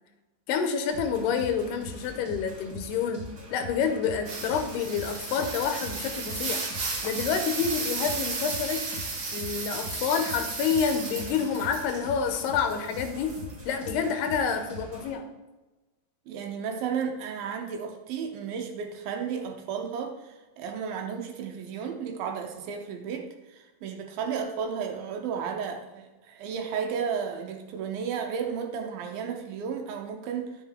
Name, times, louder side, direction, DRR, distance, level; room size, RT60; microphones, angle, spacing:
voice 1, 0.5-3.2 3.5-6.6 7.0-8.8 9.3-13.4 13.7-15.3, left 6 dB, 85° left, 7 dB, 2.9 m, -28 dB
sound 1, 0.9-15.1, equal, 30° right, 2.9 m, -43 dB
sound 2, 4.2-12.1 12.4-13.8 14.3-14.4, right 3 dB, 50° right, 1.5 m, -34 dB
voice 2, 16.3-30.5, right 6 dB, 75° right, 4 dB, 2.5 m, -33 dB
11.0 x 7.7 x 3.8 m, 1.1 s
omnidirectional pair, 4.6 m